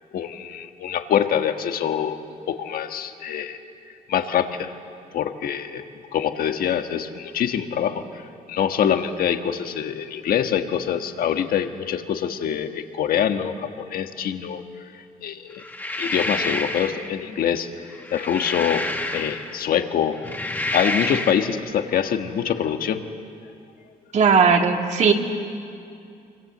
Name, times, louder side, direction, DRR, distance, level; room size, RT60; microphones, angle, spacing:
voice 1, 0.1-2.2 2.5-4.7 5.1-5.8 6.1-8.2 8.5-14.6 14.9-15.6 16.0-17.7 18.1-20.2 20.7-23.0, left 9 dB, 70° left, 7 dB, 1.5 m, -25 dB
sound 1, 15.6-17.1 17.9-19.6 20.1-21.5, left 1 dB, 10° left, 1.8 m, -28 dB
voice 2, 24.1-25.1, right 5 dB, 50° right, 3 dB, 2.2 m, -17 dB
25.5 x 25.0 x 7.8 m, 2.5 s
cardioid pair, 130°, 16 cm